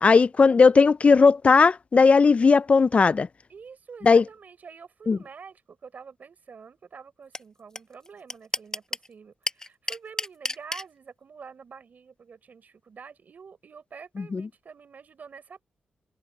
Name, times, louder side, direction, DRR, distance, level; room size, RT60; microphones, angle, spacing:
voice 1, 0.0-3.3 4.0-4.2 5.1-5.2 14.3-14.5, left 4 dB, 40° left, 0.4 m, -17 dB
voice 2, 3.5-15.6, right 6 dB, 60° right, 4.0 m, -47 dB
sound 1, 7.3-7.4 7.8-7.9 8.0-9.1 9.5-10.8, left 2 dB, 20° left, 1.3 m, -29 dB
cardioid pair, 75°, 3 cm